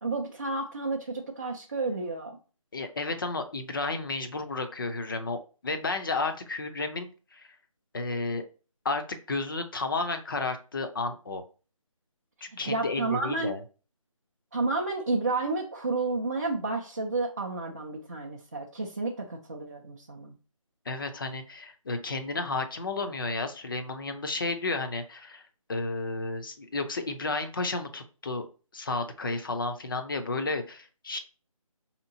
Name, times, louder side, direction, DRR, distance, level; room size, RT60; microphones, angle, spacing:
voice 1, 0.0-2.4 12.7-13.5 14.5-20.3, right 3 dB, 30° right, -1 dB, 0.4 m, -31 dB
voice 2, 2.7-7.5 7.9-8.4 8.8-11.4 12.4-13.6 20.9-25.4 25.7-28.5 28.7-31.2, left 3 dB, 40° left, 7 dB, 0.5 m, -32 dB
5.1 x 2.8 x 2.6 m, 0.36 s
figure-of-eight pair, 160°, 18 cm